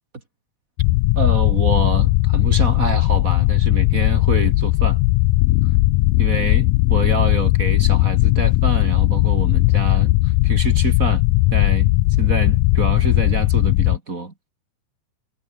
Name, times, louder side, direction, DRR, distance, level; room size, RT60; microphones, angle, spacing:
sound 1, 0.8-14.0, left 19 dB, 80° left, 2.2 m, -17 dB
voice 1, 1.2-5.0 6.2-11.2 11.5-14.3, right 3 dB, 25° right, 2.6 m, -26 dB
omnidirectional pair, 3.9 m